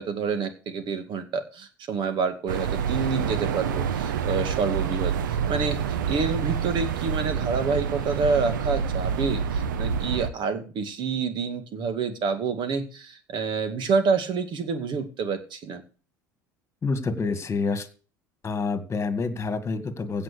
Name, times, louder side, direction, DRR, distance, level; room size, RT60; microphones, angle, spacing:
voice 1, 0.0-15.8, right 5 dB, 50° right, 9 dB, 2.3 m, -28 dB
sound 1, 2.5-10.3, right 7 dB, 75° right, 1.1 m, -27 dB
voice 2, 16.8-17.9 18.4-20.2, left 4 dB, 25° left, 11 dB, 2.1 m, -27 dB
16.0 x 5.7 x 6.9 m, 0.38 s
hypercardioid pair, 70°, 10 cm